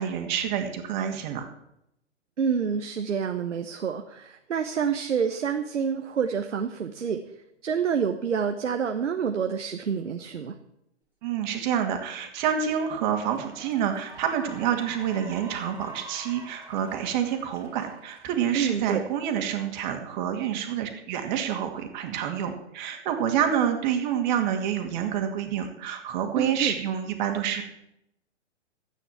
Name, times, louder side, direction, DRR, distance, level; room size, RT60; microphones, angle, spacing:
voice 1, 0.0-1.5 11.2-27.6, right 9 dB, 40° right, 5 dB, 2.3 m, -28 dB
voice 2, 2.4-7.2 7.6-10.5 18.5-19.0 26.4-26.8, right 7 dB, 80° right, 6 dB, 1.2 m, -28 dB
Cheering / Applause, 12.7-12.8 13.2-19.7, right 2 dB, 5° right, 2.7 m, -47 dB
13.0 x 9.1 x 7.2 m, 0.81 s
hypercardioid pair, 130°, 36 cm